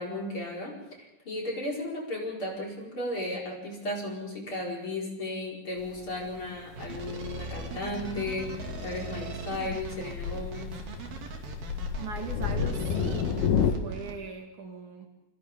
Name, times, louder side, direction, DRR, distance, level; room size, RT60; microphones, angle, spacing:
voice 1, 0.0-10.8, left 1 dB, 35° left, -3 dB, 5.5 m, -35 dB
Thunder, 5.8-13.7, left 7 dB, 70° left, 2.6 m, -32 dB
sound 1, 6.8-14.1, right 3 dB, 85° right, 4.2 m, -39 dB
voice 2, 12.0-13.3 13.6-15.1, right 4 dB, 60° right, 2 dB, 3.3 m, -40 dB
28.5 x 26.5 x 3.7 m, 0.90 s
omnidirectional pair, 4.1 m